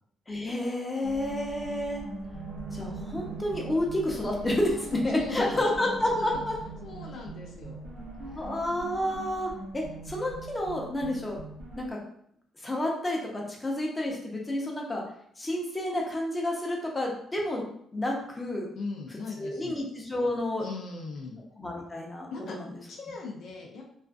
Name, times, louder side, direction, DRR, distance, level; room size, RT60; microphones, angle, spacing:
voice 1, 0.3-2.1 2.7-6.6 8.3-11.4 11.8-12.0 12.6-15.0 15.4-17.6 17.9-18.7 19.4-20.7 21.6-22.7, left 1 dB, 20° left, -1 dB, 0.6 m, -30 dB
sound 1, 1.0-11.9, right 3 dB, 85° right, 0.7 m, -40 dB
voice 2, 5.1-5.6 6.2-6.4 6.8-7.8 8.2-8.5 18.8-19.8 20.6-21.4 22.3-22.6 22.9-23.9, left 4 dB, 75° left, 1 dB, 0.4 m, -39 dB
2.4 x 2.4 x 2.3 m, 0.68 s
cardioid pair, 90°, 0 cm